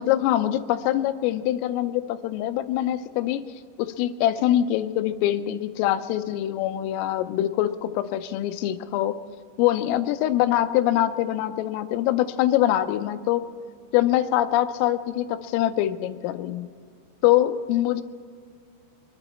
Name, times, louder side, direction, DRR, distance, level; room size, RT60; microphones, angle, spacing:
voice 1, 0.0-3.4 3.8-9.2 9.6-13.5 13.9-16.7 17.2-18.0, left 13 dB, 85° left, 11 dB, 3.2 m, -24 dB
25.0 x 12.0 x 4.3 m, 2.2 s
omnidirectional pair, 6.0 m